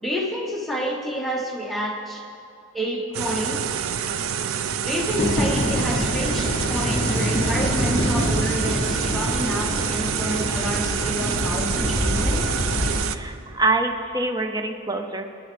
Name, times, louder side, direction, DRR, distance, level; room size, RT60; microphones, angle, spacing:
voice 1, 0.0-2.2 2.7-3.8 4.9-12.5, equal, ahead, -2 dB, 1.0 m, -29 dB
sound 1, 3.1-13.2, right 7 dB, 75° right, 0.4 m, -27 dB
sound 2, 5.1-13.0, equal, 25° left, 1.1 m, -25 dB
voice 2, 13.1-15.2, right 2 dB, 15° right, 6 dB, 0.6 m, -25 dB
20.5 x 9.8 x 3.4 m, 2.6 s
head